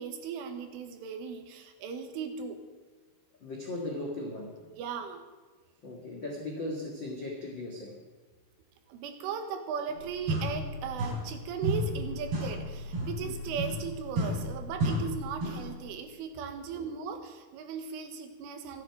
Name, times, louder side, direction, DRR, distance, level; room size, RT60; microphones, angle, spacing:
voice 1, 0.0-2.6 4.7-5.2 8.9-18.8, right 6 dB, 85° right, 6 dB, 4.0 m, -37 dB
voice 2, 3.4-4.7 5.8-8.0 13.2-13.6 16.7-16.9, left 2 dB, 60° left, -1 dB, 1.1 m, -38 dB
sound 1, 9.9-10.0 10.3-11.4 11.6-15.8, equal, 55° right, 6.7 m, -32 dB
25.5 x 9.7 x 4.8 m, 1.3 s
omnidirectional pair, 5.5 m